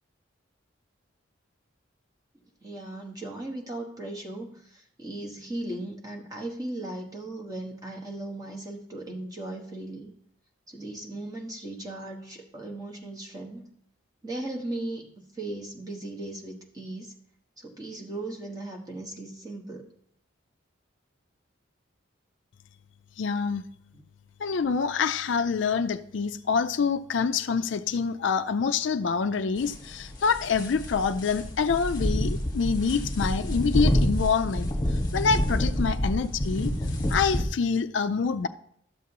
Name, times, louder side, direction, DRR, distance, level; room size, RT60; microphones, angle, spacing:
voice 1, 2.6-10.1 10.7-13.7 14.2-15.1 15.3-17.1 17.6-19.9 23.9-24.0, right 2 dB, 20° right, 1.3 m, -37 dB
voice 2, 23.2-23.7 24.4-36.7 37.1-38.5, left 5 dB, 65° left, 0.4 m, -26 dB
sound 1, 29.6-37.4, equal, 20° left, 1.3 m, -28 dB
12.5 x 7.3 x 2.9 m
head